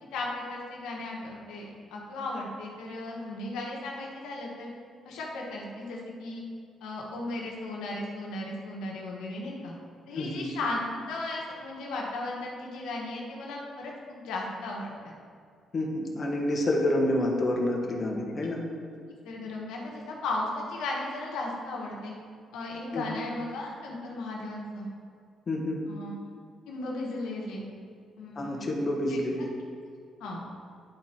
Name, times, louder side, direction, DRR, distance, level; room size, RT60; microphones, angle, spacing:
voice 1, 0.0-4.7 5.0-6.4 6.8-9.7 10.1-10.8 11.1-14.9 19.2-22.1 22.5-24.9 25.9-26.1 26.7-27.6 28.2-28.7 29.1-29.2 30.2-30.4, left 2 dB, 90° left, -2 dB, 1.2 m, -36 dB
voice 2, 10.1-10.5 15.7-18.6 22.9-23.1 25.5-25.8 28.3-29.5, left 1 dB, 40° left, 0 dB, 1.2 m, -28 dB
10.5 x 4.2 x 4.4 m, 2.3 s
cardioid pair, 90°, 0 cm